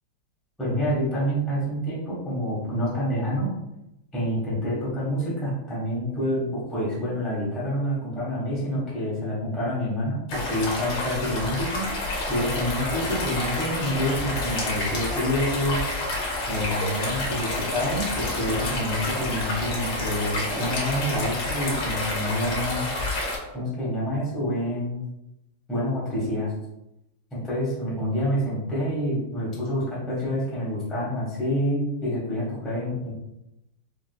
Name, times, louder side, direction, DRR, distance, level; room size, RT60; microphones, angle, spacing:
voice 1, 0.6-3.5 4.1-11.8 12.3-15.8 16.5-22.8 23.5-25.0 25.7-26.5 27.3-33.1, equal, ahead, -8 dB, 0.4 m, -27 dB
sound 1, 10.3-23.4, left 2 dB, 60° left, 1.2 m, -29 dB
4.7 x 2.1 x 2.3 m, 0.90 s
omnidirectional pair, 2.4 m